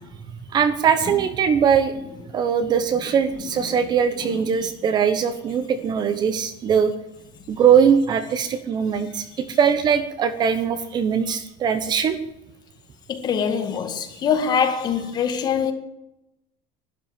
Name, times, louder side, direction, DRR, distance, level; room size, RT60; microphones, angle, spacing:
voice 1, 0.5-1.9 2.3-6.9 7.5-12.2, right 7 dB, 30° right, 1.0 m, -21 dB
voice 2, 3.4-3.8 4.2-4.7 13.1-15.7, left 7 dB, 25° left, 1.8 m, -24 dB
12.5 x 12.0 x 9.1 m
cardioid pair, 180°, 15 cm